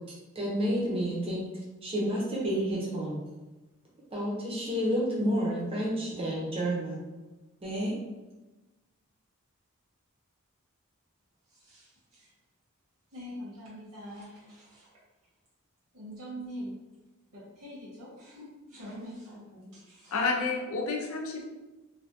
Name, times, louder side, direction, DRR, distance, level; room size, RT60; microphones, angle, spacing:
voice 1, 0.3-1.5 1.8-3.2 4.1-7.0 7.6-7.9, equal, 25° right, -5 dB, 0.7 m, -30 dB
voice 2, 11.5-12.3 13.1-14.9 15.9-16.8 17.3-20.3, equal, 85° right, -7 dB, 1.5 m, -44 dB
voice 3, 20.1-21.5, left 4 dB, 75° left, 1 dB, 0.5 m, -30 dB
3.2 x 2.2 x 2.7 m, 1.1 s
head